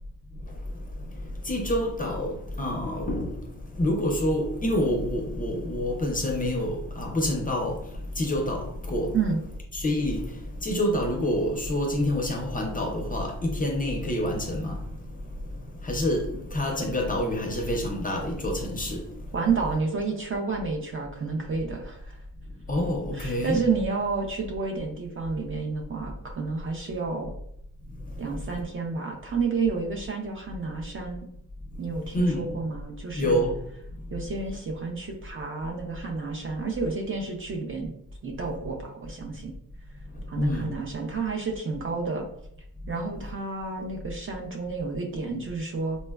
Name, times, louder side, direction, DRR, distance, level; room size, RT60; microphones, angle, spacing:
voice 1, 1.5-3.4 3.8-7.8 8.2-9.1 9.7-10.3 10.6-14.8 15.8-19.0 22.7-23.6 32.1-32.5 33.2-33.5 40.4-40.7, left 1 dB, 25° left, 0.4 m, -27 dB
voice 2, 19.3-22.2 23.1-27.3 28.2-31.3 31.8-33.4 34.1-37.9 38.2-39.5 40.3-42.3 42.9-46.0, right 4 dB, 40° right, 0.5 m, -30 dB
4.1 x 2.1 x 2.2 m
wide cardioid pair, 145°, 33 cm